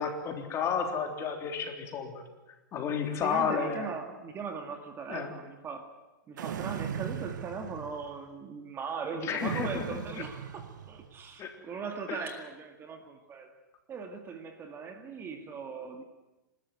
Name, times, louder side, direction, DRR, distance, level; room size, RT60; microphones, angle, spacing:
voice 1, 0.0-2.2 2.7-3.9 5.1-5.3 9.2-10.0 11.4-11.5 12.1-12.2, left 6 dB, 25° left, 4 dB, 3.4 m, -31 dB
voice 2, 3.1-5.9 6.3-13.5 13.9-16.0, right 5 dB, 20° right, 5 dB, 2.0 m, -39 dB
sound 1, 6.4-8.2 9.4-11.2, right 8 dB, 70° right, 1.6 m, -38 dB
27.5 x 13.0 x 9.4 m, 1.1 s
hypercardioid pair, 130°, 10 cm